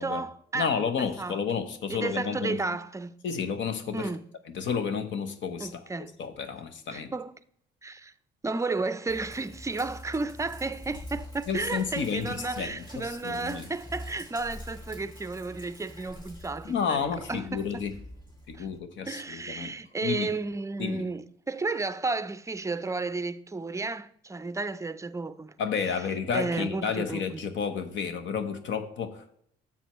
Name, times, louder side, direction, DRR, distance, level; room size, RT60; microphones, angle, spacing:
voice 1, 0.0-1.4 1.9-3.2 3.9-4.2 5.6-6.1 6.9-7.3 7.8-8.1 8.4-17.0 17.3-17.7 18.5-18.7 19.1-25.5 25.9-27.4, right 3 dB, 15° right, 0.5 m, -33 dB
voice 2, 0.5-2.6 3.2-4.1 4.5-5.8 6.2-7.1 11.5-13.7 16.6-17.9 18.5-19.7 20.0-20.3 20.8-21.0 25.6-29.4, left 6 dB, 70° left, 0.9 m, -31 dB
Sink (filling or washing), 9.1-18.8, left 1 dB, 20° left, 2.7 m, -45 dB
10.0 x 7.2 x 3.1 m
cardioid pair, 90°, 20 cm